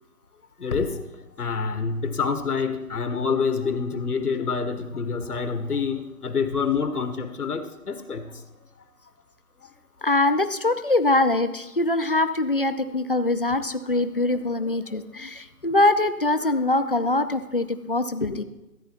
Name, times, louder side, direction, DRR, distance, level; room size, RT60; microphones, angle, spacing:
voice 1, 0.6-1.0 1.4-8.4 13.9-14.0 14.4-14.5 14.9-15.0, left 5 dB, 80° left, 9 dB, 1.3 m, -27 dB
voice 2, 10.0-18.4, left 2 dB, 40° left, 11 dB, 0.4 m, -23 dB
14.0 x 8.0 x 4.4 m, 0.99 s
figure-of-eight pair, 155°, 45 cm